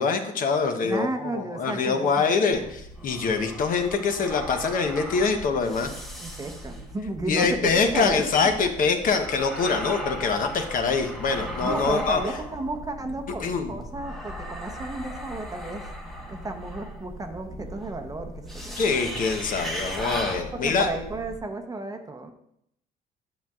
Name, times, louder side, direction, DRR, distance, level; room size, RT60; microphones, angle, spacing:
voice 1, 0.0-1.1 1.3-5.9 7.3-12.2 13.4-13.7 18.8-20.9, left 5 dB, 55° left, 5 dB, 1.0 m, -24 dB
voice 2, 0.8-2.7 6.2-8.7 11.6-15.8 16.3-18.8 20.4-22.3, right 2 dB, 20° right, 5 dB, 0.8 m, -33 dB
sound 1, 2.5-21.4, equal, ahead, 1.2 m, -37 dB
10.0 x 7.3 x 2.4 m, 0.76 s
cardioid pair, 110°, 17 cm